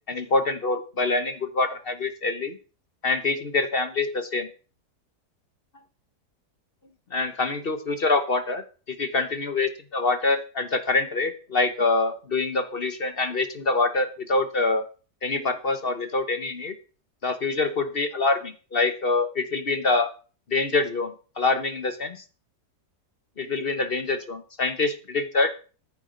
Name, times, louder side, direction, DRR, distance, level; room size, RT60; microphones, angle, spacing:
voice 1, 0.1-2.6 3.0-4.5 7.1-8.6 8.9-14.8 15.2-16.7 17.2-20.1 20.5-22.2 23.4-25.5, left 3 dB, 40° left, 9 dB, 1.1 m, -25 dB
14.0 x 7.2 x 5.1 m, 0.37 s
omnidirectional pair, 1.7 m